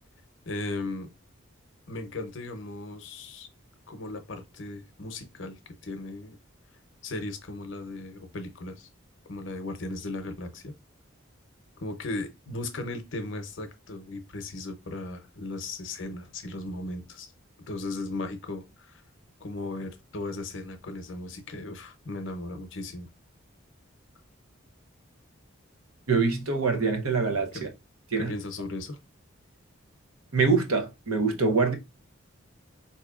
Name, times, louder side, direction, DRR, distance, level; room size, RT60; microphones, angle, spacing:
voice 1, 0.5-1.1 1.9-3.5 3.9-6.4 7.0-8.9 9.3-10.7 11.8-17.3 17.7-19.0 19.4-23.1 28.2-29.0, left 2 dB, 60° left, 0.7 m, -36 dB
voice 2, 26.1-27.7 28.1-28.3 30.3-31.8, right 4 dB, 90° right, 0.9 m, -24 dB
4.2 x 2.8 x 2.4 m
head